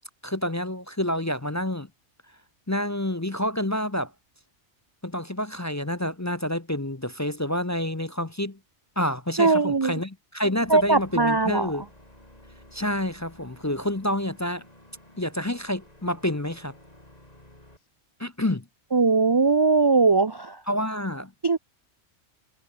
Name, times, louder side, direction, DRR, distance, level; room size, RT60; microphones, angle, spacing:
voice 1, 0.2-1.9 2.7-4.1 5.0-8.6 9.0-11.8 12.7-14.6 15.2-16.7 18.2-18.6 20.7-21.3, left 1 dB, 20° left, 0.6 m, -28 dB
voice 2, 9.4-9.9 10.7-11.7 18.9-20.6 21.4-21.6, right 4 dB, 35° right, 0.4 m, -20 dB
sound 1, 10.5-17.8, left 1 dB, 35° left, 5.8 m, -52 dB
omnidirectional pair, 1.2 m